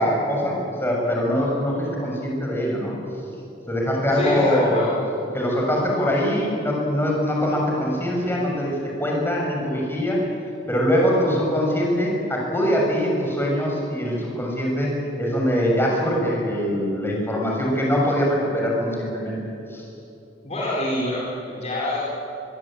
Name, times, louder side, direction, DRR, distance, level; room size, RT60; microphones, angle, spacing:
voice 1, 0.0-2.9 3.7-4.9 5.3-10.2 10.7-19.4 19.7-19.8, equal, 10° left, -2 dB, 6.8 m, -23 dB
voice 2, 4.1-4.9 20.4-22.0, left 1 dB, 35° left, -5 dB, 4.7 m, -26 dB
24.5 x 22.0 x 8.9 m, 2.7 s
head